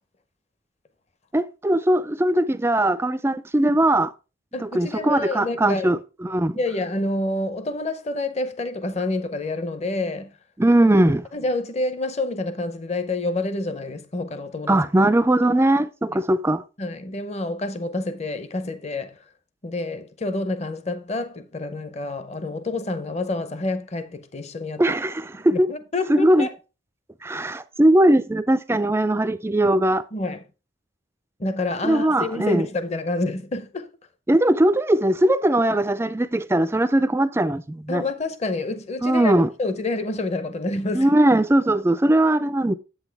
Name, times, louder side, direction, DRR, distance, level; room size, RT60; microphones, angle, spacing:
voice 1, 1.3-4.1 4.6-6.6 10.6-11.3 14.7-16.6 24.8-25.7 26.1-26.5 27.2-30.0 31.8-32.7 34.3-38.0 39.0-39.5 40.9-42.7, right 1 dB, 10° right, 0.3 m, -20 dB
voice 2, 4.5-5.9 6.5-10.4 11.3-14.9 16.1-16.2 16.8-19.2 19.6-24.8 25.5-26.5 30.1-30.4 31.4-33.9 37.9-39.3 39.6-41.1, left 2 dB, 35° left, 0.7 m, -28 dB
8.2 x 8.1 x 3.4 m
head